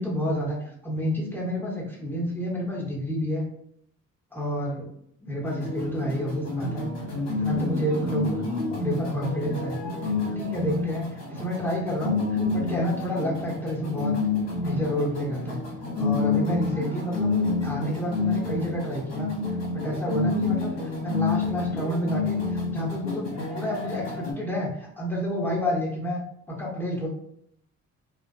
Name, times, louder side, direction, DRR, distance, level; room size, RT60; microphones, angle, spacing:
voice 1, 0.0-3.5 4.3-4.9 5.2-6.9 7.4-8.4 8.8-9.8 10.2-14.1 14.6-15.6 16.0-17.3 17.6-19.3 19.7-26.2 26.5-27.1, equal, 5° left, -5 dB, 0.9 m, -29 dB
sound 1, 5.4-24.3, left 3 dB, 55° left, 1.0 m, -29 dB
2.4 x 2.2 x 2.4 m, 0.69 s
cardioid pair, 90°, 30 cm